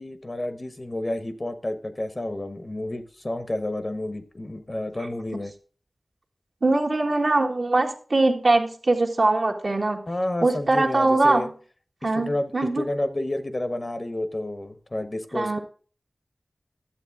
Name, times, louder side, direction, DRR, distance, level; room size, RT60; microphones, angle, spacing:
voice 1, 0.0-5.5 10.1-11.5 12.0-15.6, left 1 dB, 40° left, 10 dB, 1.1 m, -30 dB
voice 2, 6.6-10.0 10.4-11.4 12.0-12.9 15.3-15.6, right 2 dB, 65° right, 1 dB, 1.7 m, -22 dB
11.5 x 7.5 x 3.6 m, 0.41 s
wide cardioid pair, 50°, 0 cm